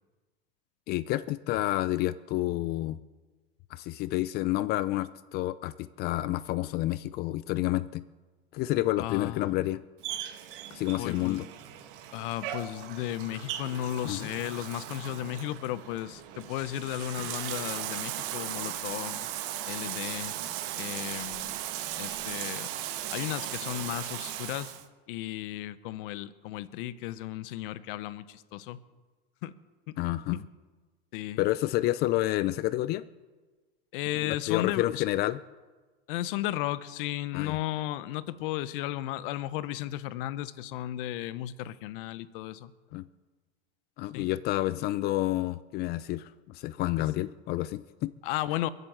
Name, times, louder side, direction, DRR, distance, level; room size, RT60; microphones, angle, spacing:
voice 1, 0.9-3.0 3.7-8.0 8.5-9.8 10.7-11.4 14.0-14.3 30.0-30.4 31.4-33.0 34.2-35.4 37.3-37.6 42.9-43.1 44.0-48.1, left 16 dB, 35° left, 17 dB, 0.4 m, -29 dB
voice 2, 9.0-9.6 11.0-11.4 12.1-19.3 19.7-20.3 20.8-21.6 22.0-22.7 23.1-24.7 25.1-28.8 29.4-29.5 29.9-30.0 30.3-30.4 31.1-31.4 33.9-35.0 36.1-42.7 44.1-44.3 47.0-47.1 48.2-48.7, left 14 dB, 55° left, 16 dB, 0.9 m, -34 dB
Bathtub (filling or washing), 10.0-24.8, right 12 dB, 60° right, 1.5 m, -37 dB
22.5 x 8.2 x 7.6 m, 1.3 s
supercardioid pair, 125°, 31 cm